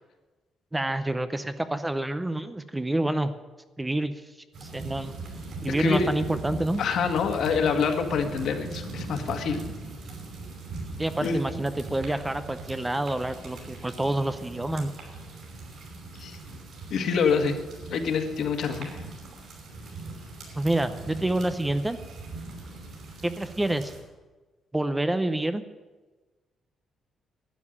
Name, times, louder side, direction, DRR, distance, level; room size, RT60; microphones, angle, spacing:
voice 1, 0.7-3.3 3.8-4.2 4.6-5.1 5.6-6.8 11.0-14.9 20.6-22.0 23.2-23.9 24.7-25.6, right 1 dB, 10° right, 11 dB, 0.6 m, -27 dB
sound 1, 4.5-24.0, right 3 dB, 55° right, 5.4 m, -40 dB
voice 2, 5.7-6.1 6.8-9.6 11.2-11.4 16.2-16.4 16.9-17.6 17.9-18.9, left 5 dB, 65° left, 5 dB, 1.7 m, -26 dB
12.0 x 9.4 x 9.9 m, 1.2 s
cardioid pair, 155°, 0 cm